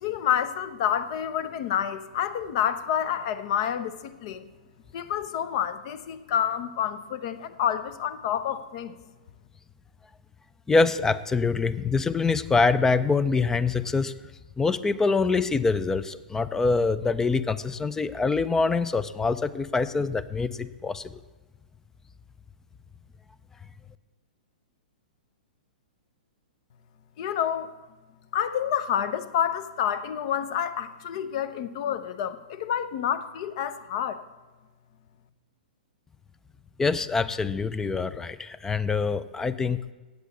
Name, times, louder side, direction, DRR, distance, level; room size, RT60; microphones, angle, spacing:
voice 1, 0.0-4.5 4.9-8.9 27.2-27.7 28.3-34.2, left 9 dB, 45° left, 12 dB, 0.8 m, -28 dB
voice 2, 10.7-14.1 14.6-21.1 36.8-39.8, left 4 dB, 10° left, 15 dB, 0.4 m, -25 dB
8.0 x 8.0 x 8.2 m, 1.2 s
figure-of-eight pair, 115°, 5 cm